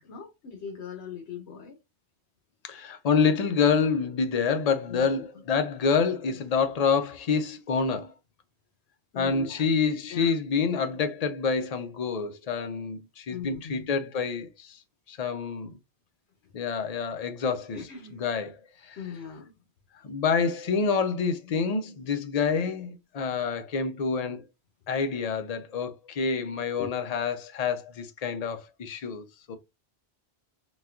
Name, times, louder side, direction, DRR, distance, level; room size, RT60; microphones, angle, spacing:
voice 1, 0.0-1.8 4.9-5.2 9.1-9.7 10.1-10.3 13.3-13.8 17.7-18.2 19.0-19.5 26.8-26.9, left 7 dB, 80° left, 1.0 m, -40 dB
voice 2, 2.6-8.1 9.1-14.8 15.1-15.8 16.5-17.8 18.2-19.1 20.0-24.5 24.9-29.6, left 5 dB, 55° left, 0.4 m, -27 dB
4.1 x 2.3 x 2.3 m
omnidirectional pair, 1.2 m